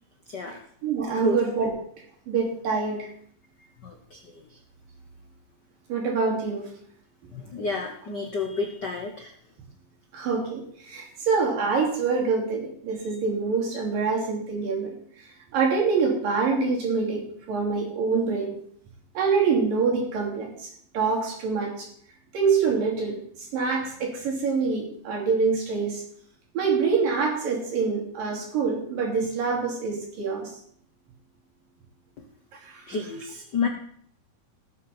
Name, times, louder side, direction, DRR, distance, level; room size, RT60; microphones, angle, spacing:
voice 1, 0.8-1.7 2.3-3.1 5.9-6.7 10.1-15.0 15.5-18.5 19.1-20.7 20.9-21.9 22.3-23.2 23.5-26.0 26.5-30.5 32.6-32.8, right 5 dB, 90° right, -2 dB, 4.8 m, -25 dB
voice 2, 3.8-4.4 7.3-9.3 32.2-32.3 32.9-33.7, left 4 dB, 90° left, 3 dB, 0.9 m, -30 dB
18.5 x 7.5 x 4.4 m, 0.62 s
omnidirectional pair, 3.8 m